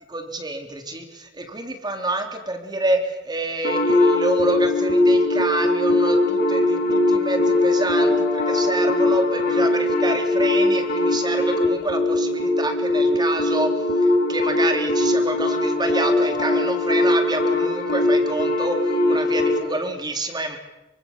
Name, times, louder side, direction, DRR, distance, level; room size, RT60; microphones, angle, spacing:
voice 1, 0.1-20.6, right 2 dB, 20° right, 5 dB, 3.7 m, -28 dB
sound 1, 3.6-19.6, left 2 dB, 55° left, 6.4 m, -20 dB
26.5 x 25.5 x 7.5 m, 1.0 s
head